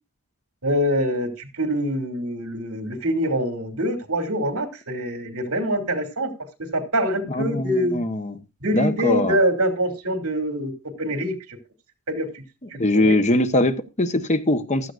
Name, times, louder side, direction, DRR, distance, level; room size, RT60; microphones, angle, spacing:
voice 1, 0.6-6.3 6.6-8.0 8.6-10.7 11.0-11.4 12.1-12.3 12.7-13.2, equal, 70° right, 2.9 m, -24 dB
voice 2, 7.3-8.3 8.7-9.4 12.8-14.9, left 1 dB, 30° left, 1.0 m, -21 dB
15.5 x 12.5 x 2.5 m
head